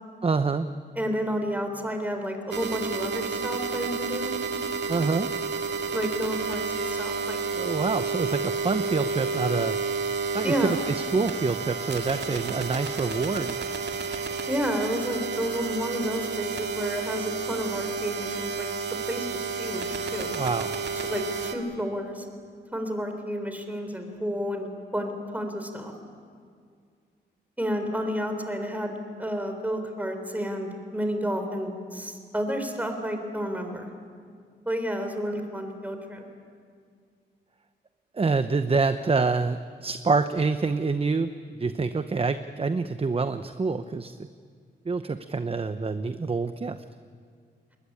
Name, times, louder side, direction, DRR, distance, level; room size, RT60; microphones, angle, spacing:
voice 1, 0.2-0.7 4.9-5.3 7.5-9.8 10.3-13.6 20.3-20.7 38.1-41.3 41.6-44.1 44.9-46.8, right 4 dB, 30° right, 10 dB, 0.8 m, -26 dB
voice 2, 1.0-4.3 5.9-7.4 10.4-10.7 14.5-18.7 19.1-20.4 21.0-22.3 22.7-25.9 27.6-33.9 34.7-36.2, equal, 10° right, 5 dB, 3.9 m, -31 dB
sound 1, 2.5-21.6, right 4 dB, 65° right, 2.3 m, -31 dB
22.0 x 20.0 x 9.9 m, 2.1 s
cardioid pair, 85°, 19 cm